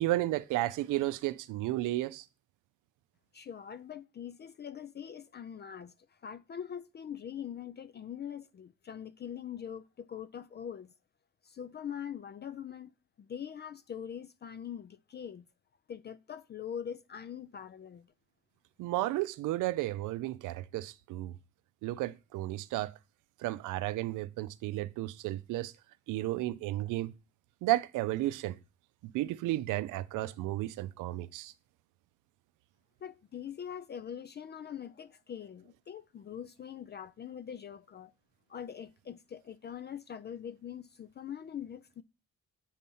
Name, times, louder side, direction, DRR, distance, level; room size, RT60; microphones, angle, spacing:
voice 1, 0.0-2.3 18.8-21.3 21.8-22.9 23.4-25.7 26.1-27.1 27.6-28.6 29.0-31.5, right 16 dB, 90° right, 0.5 m, -33 dB
voice 2, 3.3-10.9 11.4-12.9 13.2-15.5 15.9-18.1 33.0-38.1 38.5-42.0, left 8 dB, 35° left, 0.4 m, -43 dB
7.3 x 4.2 x 5.4 m
cardioid pair, 90°, 30 cm